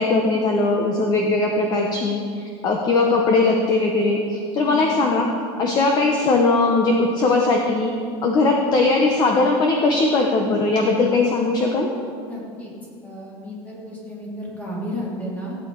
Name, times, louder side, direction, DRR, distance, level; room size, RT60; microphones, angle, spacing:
voice 1, 0.0-5.3 5.6-7.9 8.2-11.9, left 3 dB, 30° left, 1 dB, 1.0 m, -19 dB
voice 2, 4.6-5.2 8.4-8.6 12.3-12.7 13.0-15.6, equal, 10° left, -5 dB, 2.9 m, -33 dB
15.5 x 8.8 x 4.7 m, 2.4 s
cardioid pair, 165°, 14 cm